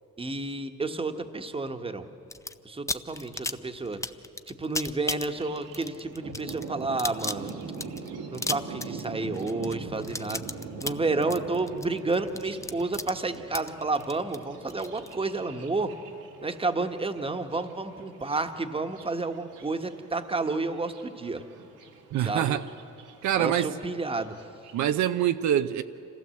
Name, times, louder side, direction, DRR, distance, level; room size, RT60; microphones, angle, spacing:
voice 1, 0.2-2.1 2.6-4.0 4.5-7.5 8.3-10.4 10.8-15.9 16.4-21.4 22.2-22.6 23.4-24.4, right 3 dB, 20° right, 1.2 m, -30 dB
sound 1, 2.3-2.5 2.9-15.1, left 2 dB, 10° left, 0.6 m, -35 dB
Thunder, 5.3-24.9, right 4 dB, 90° right, 2.0 m, -43 dB
voice 2, 22.1-22.7 23.2-23.8 24.7-25.8, right 11 dB, 75° right, 0.6 m, -25 dB
26.0 x 15.5 x 7.7 m
cardioid pair, 90°, 30 cm